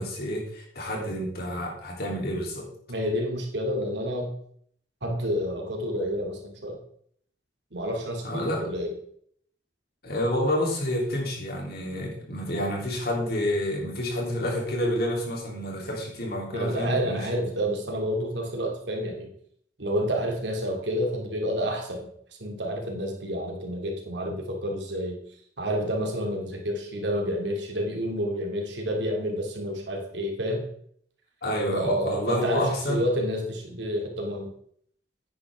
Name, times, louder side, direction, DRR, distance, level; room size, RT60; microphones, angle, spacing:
voice 1, 0.0-2.7 8.2-8.6 10.0-17.3 31.4-33.0, left 1 dB, 60° left, -1 dB, 3.2 m, -29 dB
voice 2, 2.9-4.3 5.0-6.8 7.7-8.9 16.5-19.3 19.8-22.1 22.4-25.2 25.6-30.7 31.7-34.5, equal, 85° right, 2 dB, 2.3 m, -29 dB
9.8 x 9.7 x 3.5 m, 0.64 s
head